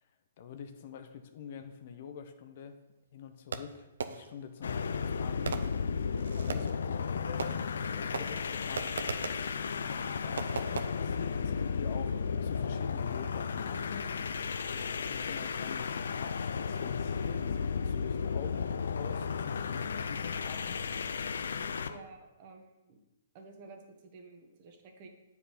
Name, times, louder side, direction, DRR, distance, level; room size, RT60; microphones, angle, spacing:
voice 1, 0.4-2.8 3.1-5.6 6.4-9.0 9.4-14.1 14.9-20.8, left 7 dB, 55° left, 8 dB, 0.7 m, -46 dB
Fireworks, 3.5-4.5 5.5-6.8 7.4-7.9 8.1-9.5 10.4-10.9, right 5 dB, 80° right, 0.6 m, -38 dB
sound 1, 4.6-22.0, left 6 dB, 80° left, 0.4 m, -34 dB
voice 2, 21.9-23.0 23.3-25.1, right 3 dB, 40° right, 4 dB, 1.3 m, -52 dB
7.7 x 4.7 x 5.1 m, 0.99 s
hypercardioid pair, 140°, 0 cm